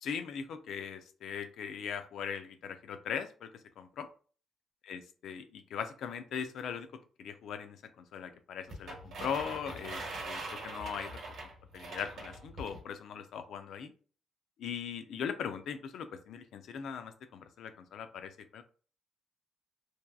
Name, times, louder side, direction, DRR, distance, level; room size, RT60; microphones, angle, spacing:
voice 1, 0.0-3.5 3.8-4.1 4.9-6.9 7.2-11.2 11.7-13.9 14.6-18.6, left 7 dB, 75° left, 9 dB, 0.3 m, -40 dB
sound 1, 8.7-12.8, right 2 dB, 65° right, 0.8 m, -42 dB
2.7 x 2.2 x 2.3 m, 0.41 s
cardioid pair, 90°, 0 cm